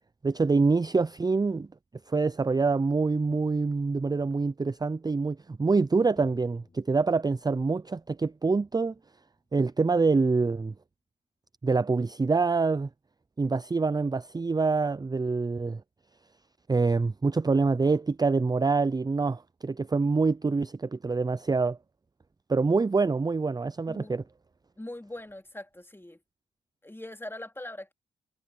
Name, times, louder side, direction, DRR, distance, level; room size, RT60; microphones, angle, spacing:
voice 1, 0.2-1.7 2.1-8.9 9.5-10.7 11.6-12.9 13.4-15.8 16.7-21.8 22.5-24.2, right 4 dB, 20° right, 0.5 m, -25 dB
sound 1, 6.2-8.3, left 3 dB, 35° left, 3.3 m, -59 dB
voice 2, 23.9-24.2 24.8-26.2 26.8-27.9, left 1 dB, 10° left, 2.9 m, -41 dB
supercardioid pair, 50°, 19 cm